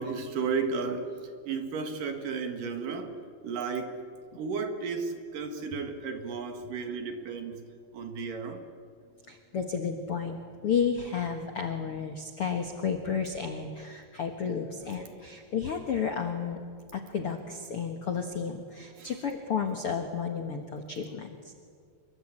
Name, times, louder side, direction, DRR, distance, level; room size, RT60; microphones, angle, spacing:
voice 1, 0.0-3.1 3.4-4.0 4.3-7.6 7.9-8.6 14.8-15.1 19.0-19.1, right 5 dB, 55° right, 6 dB, 3.1 m, -33 dB
voice 2, 9.3-16.6 16.9-21.5, left 6 dB, 90° left, 5 dB, 1.2 m, -32 dB
26.0 x 23.5 x 8.9 m, 2.1 s
omnidirectional pair, 5.0 m